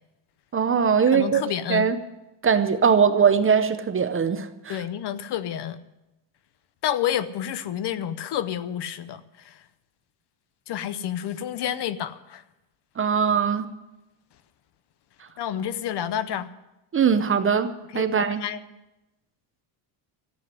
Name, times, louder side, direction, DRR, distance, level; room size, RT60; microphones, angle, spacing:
voice 1, 0.5-1.4 1.7-2.0 2.4-4.8 13.0-13.7 16.9-18.4, right 6 dB, 25° right, 10 dB, 0.7 m, -21 dB
voice 2, 1.1-1.8 4.7-5.8 6.8-9.6 10.7-12.4 15.4-16.5 17.9-18.6, left 10 dB, 55° left, 15 dB, 0.8 m, -29 dB
14.5 x 7.9 x 9.6 m, 0.99 s
cardioid pair, 155°, 50 cm